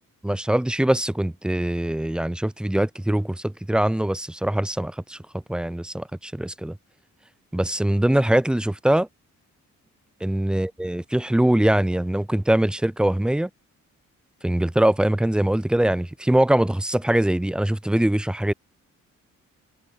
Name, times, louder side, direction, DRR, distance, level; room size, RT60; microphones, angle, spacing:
voice 1, 0.2-5.2 5.5-6.8 7.5-9.1 10.2-13.5 14.4-18.5, right 1 dB, 5° right, 0.4 m, -22 dB
cardioid pair, 110°, 31 cm